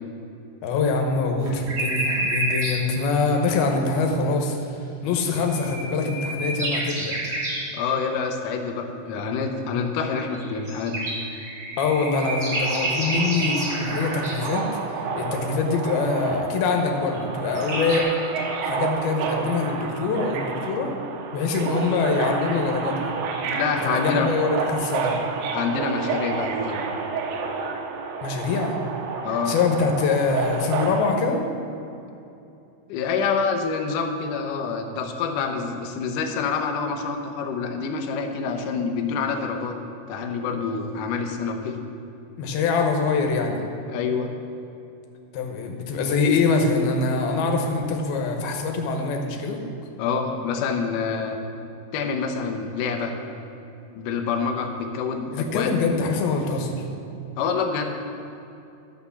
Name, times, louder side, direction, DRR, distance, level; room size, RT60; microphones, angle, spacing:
voice 1, 0.6-4.6 5.0-7.1 11.8-14.7 15.2-18.1 18.6-20.9 21.3-23.1 23.8-25.1 28.2-28.8 29.5-31.4 42.4-43.6 45.3-49.6 55.3-56.8, left 4 dB, 70° left, 3 dB, 2.7 m, -24 dB
sound 1, 1.4-2.8 5.3-7.6 10.3-14.5 17.1-17.2 17.4-18.0, right 1 dB, 35° right, 2.8 m, -28 dB
voice 2, 7.7-11.1 23.4-24.4 25.5-26.9 29.2-29.6 32.9-39.8 40.1-41.8 43.9-44.3 50.0-51.4 51.9-53.2 54.0-55.7 57.4-58.0, left 5 dB, 85° left, 3 dB, 1.8 m, -27 dB
Subway metro underground, 12.2-31.1, right 5 dB, 90° right, 3.2 m, -30 dB
12.0 x 6.5 x 7.0 m, 2.8 s
omnidirectional pair, 4.9 m